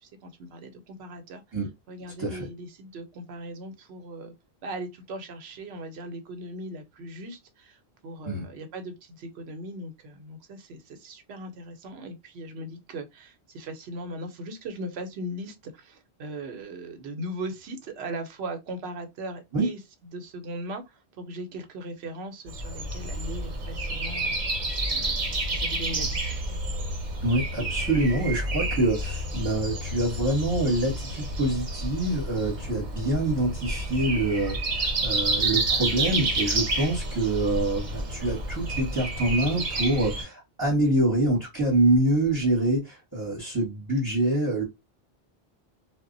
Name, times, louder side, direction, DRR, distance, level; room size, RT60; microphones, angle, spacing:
voice 1, 0.0-1.6 1.9-4.3 4.6-24.3 24.9-26.3, right 1 dB, 90° right, 0.9 m, -39 dB
Breathing, 22.5-40.2, right 2 dB, 50° right, 0.8 m, -29 dB
voice 2, 27.2-44.6, right 1 dB, 20° right, 0.9 m, -25 dB
2.1 x 2.0 x 3.7 m
omnidirectional pair, 1.1 m